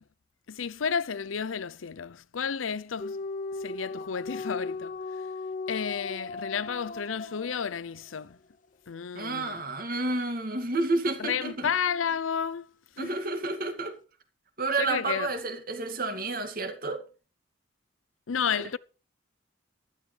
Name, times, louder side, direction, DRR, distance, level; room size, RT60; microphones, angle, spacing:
voice 1, 0.5-3.2 3.6-5.0 5.7-8.4 8.9-9.6 11.2-13.2 14.8-15.3 18.3-18.8, left 7 dB, 90° left, 0.6 m, -32 dB
sound 1, 3.0-8.2, left 3 dB, 40° left, 0.8 m, -37 dB
voice 2, 9.1-11.7 13.0-13.9 14.6-17.0 18.5-18.6, right 3 dB, 45° right, 2.2 m, -30 dB
15.0 x 12.0 x 3.3 m
head